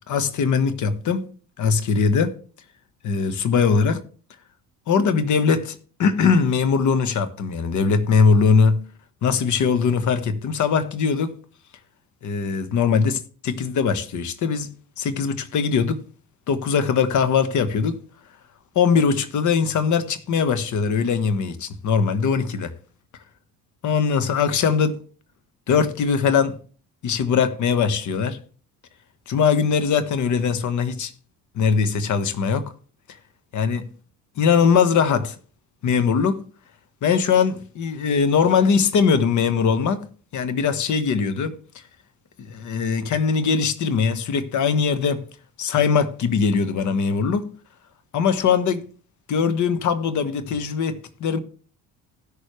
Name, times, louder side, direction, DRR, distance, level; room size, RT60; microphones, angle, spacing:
voice 1, 0.1-1.3 1.6-2.4 3.0-4.0 4.9-8.8 9.2-11.3 12.2-14.7 15.0-16.0 16.5-18.0 18.7-22.7 23.8-25.0 25.7-26.6 27.0-28.4 29.3-31.1 31.5-32.7 33.5-33.9 34.4-35.4 35.8-36.4 37.0-40.1 40.3-41.6 42.5-45.2 45.6-47.5 48.1-48.8 49.3-51.4, left 6 dB, 60° left, 1.4 m, -21 dB
16.5 x 6.7 x 3.2 m
cardioid pair, 90°, 33 cm